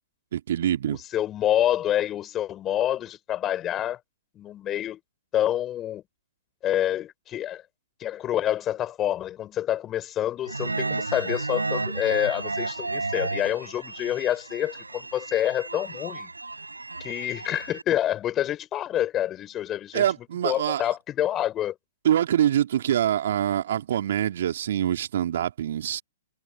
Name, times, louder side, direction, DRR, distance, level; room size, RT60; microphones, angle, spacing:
voice 1, 0.3-1.0 19.9-20.8 22.0-26.0, right 10 dB, 60° right, 2.9 m, -24 dB
voice 2, 0.9-4.0 4.3-5.0 5.3-6.0 6.6-7.6 8.0-16.3 17.0-20.0 20.4-21.7, left 12 dB, 25° left, 4.9 m, -27 dB
sound 1, 10.5-17.8, right 3 dB, 90° right, 5.2 m, -32 dB
figure-of-eight pair, 120°, 0 cm